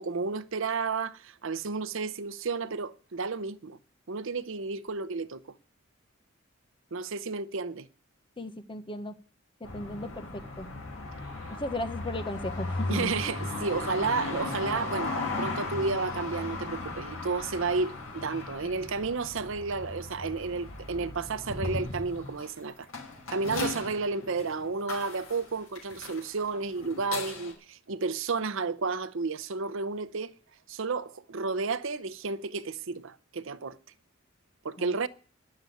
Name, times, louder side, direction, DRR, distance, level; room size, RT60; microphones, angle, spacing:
voice 1, 0.0-3.8 4.1-5.4 6.9-7.9 12.9-22.9 23.3-30.3 30.7-33.8 34.6-35.1, right 4 dB, 65° right, 0.7 m, -32 dB
voice 2, 8.4-9.1 9.6-10.7 11.6-13.1 34.8-34.9, left 1 dB, 25° left, 0.9 m, -36 dB
sound 1, 9.6-27.5, left 3 dB, 75° left, 5.2 m, -37 dB
11.0 x 7.7 x 9.2 m
head